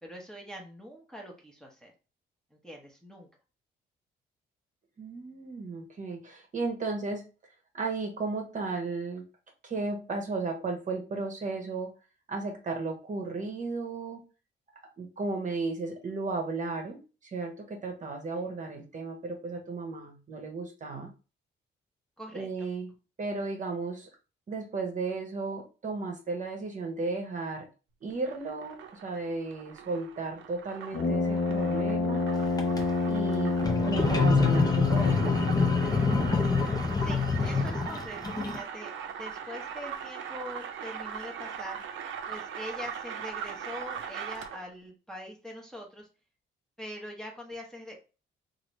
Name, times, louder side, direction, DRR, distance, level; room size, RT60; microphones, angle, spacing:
voice 1, 0.0-1.9 2.6-3.3 22.2-22.7 37.0-41.8 42.3-46.1 46.8-48.0, equal, 5° left, -1 dB, 0.9 m, -43 dB
voice 2, 5.0-7.3 7.7-9.3 9.6-11.9 12.3-14.2 15.0-21.1 22.3-24.1 24.5-27.7 28.0-32.2 33.1-33.6 33.9-35.4, right 3 dB, 40° right, 3 dB, 0.9 m, -34 dB
sound 1, 28.1-44.7, right 7 dB, 75° right, 0.6 m, -41 dB
Brass instrument, 30.9-36.8, left 3 dB, 55° left, 0.9 m, -29 dB
sound 2, 32.4-32.8 33.6-38.6, left 4 dB, 20° left, 0.6 m, -26 dB
3.1 x 2.6 x 3.0 m, 0.32 s
cardioid pair, 90°, 20 cm